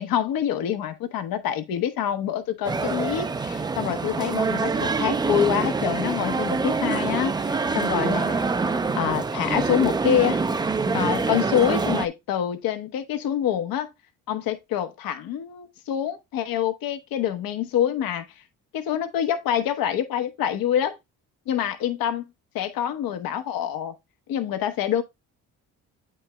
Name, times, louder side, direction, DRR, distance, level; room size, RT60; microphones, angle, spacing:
voice 1, 0.0-8.4 8.9-10.4 10.9-13.9 14.3-18.3 18.7-21.0 21.5-22.3 22.5-23.9 24.3-25.0, left 10 dB, 80° left, 1.0 m, -26 dB
sound 1, 2.6-12.1, right 4 dB, 15° right, 0.3 m, -25 dB
8.5 x 5.3 x 2.2 m
cardioid pair, 115°, 35 cm